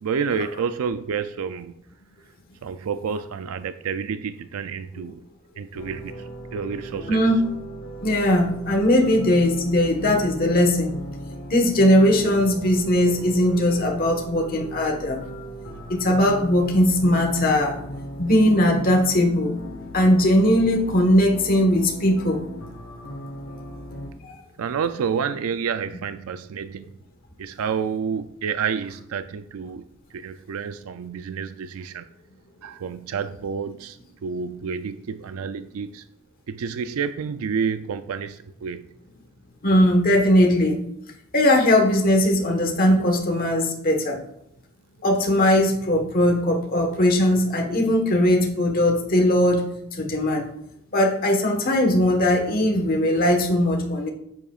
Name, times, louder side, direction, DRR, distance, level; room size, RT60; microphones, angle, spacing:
voice 1, 0.0-1.7 2.6-5.2 5.6-7.2 24.6-27.0 27.4-29.8 30.1-32.1 32.6-36.0 36.5-38.9, right 6 dB, 85° right, 11 dB, 0.4 m, -29 dB
sound 1, 5.7-24.1, equal, 65° left, 1.5 m, -38 dB
voice 2, 7.1-7.5 8.0-10.9 11.5-15.2 15.9-17.8 18.2-19.6 19.9-22.4 24.2-24.4 39.6-40.8 41.3-44.2 45.0-49.7 49.9-50.4 50.9-54.1, left 1 dB, 45° left, 2 dB, 1.3 m, -19 dB
9.8 x 7.5 x 2.4 m, 0.75 s
head